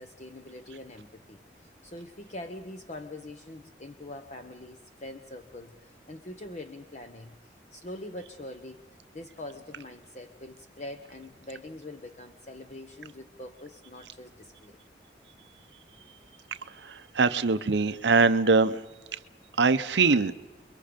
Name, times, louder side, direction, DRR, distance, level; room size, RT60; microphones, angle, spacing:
voice 1, 0.0-7.4 7.7-8.8 9.1-14.8, left 1 dB, 40° left, 7 dB, 0.9 m, -43 dB
voice 2, 16.8-18.8 19.6-20.3, right 4 dB, 75° right, 12 dB, 0.7 m, -22 dB
29.0 x 22.5 x 5.2 m, 1.3 s
head